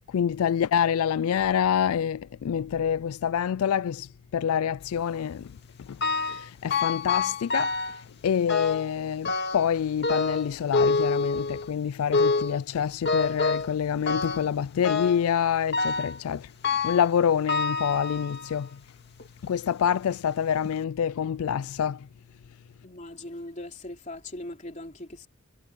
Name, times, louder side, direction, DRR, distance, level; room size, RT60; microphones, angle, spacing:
voice 1, 0.0-18.8 19.4-22.1, left 8 dB, 85° left, 0.4 m, -27 dB
sound 1, 6.0-6.5 6.7-8.0 8.5-8.9 9.3-9.7 10.0-11.7 12.1-12.6 13.1-13.8 14.1-14.5 14.8-15.3 15.7-16.2 16.6-17.1 17.5-18.6 19.2-19.3 20.1-20.2 20.7-20.8, left 4 dB, 50° left, 2.4 m, -27 dB
voice 2, 22.8-25.3, left 1 dB, 35° left, 3.4 m, -40 dB
head